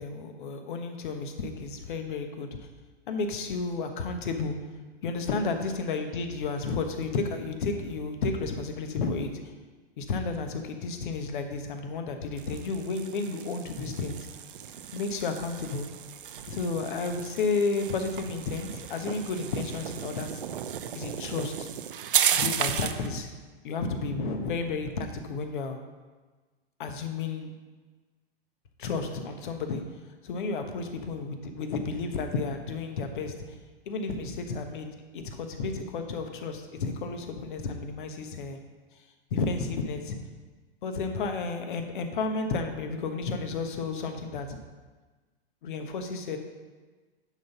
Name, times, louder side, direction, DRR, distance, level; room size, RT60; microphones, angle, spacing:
voice 1, 0.0-2.7 3.1-4.6 5.0-9.4 10.0-14.3 14.9-15.9 16.5-20.4 20.9-21.7 22.3-23.3 23.6-25.8 26.8-27.5 28.8-29.8 30.2-33.6 33.9-34.9 35.1-38.6 39.3-40.2 40.8-44.6 45.6-46.4, left 4 dB, 55° left, 6 dB, 1.2 m, -32 dB
sound 1, 12.4-23.1, right 9 dB, 60° right, 0.6 m, -34 dB
10.5 x 4.0 x 5.8 m, 1.3 s
figure-of-eight pair, 105°, 30 cm